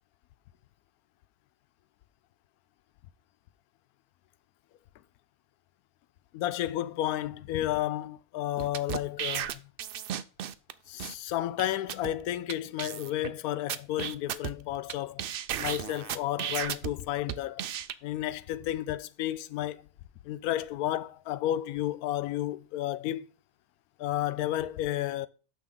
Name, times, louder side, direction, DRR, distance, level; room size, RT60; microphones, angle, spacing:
voice 1, 6.3-9.6 10.9-15.2 15.6-17.6 18.0-19.9 20.2-23.3 24.0-25.3, left 13 dB, 85° left, 1.1 m, -32 dB
sound 1, 8.6-10.7 11.0-11.1 11.6-11.7 11.9-12.1 12.5-12.6 12.8-13.3 13.7-14.9 15.2-16.9 17.3-17.9, right 10 dB, 80° right, 0.5 m, -34 dB
9.2 x 6.2 x 3.8 m
omnidirectional pair, 1.5 m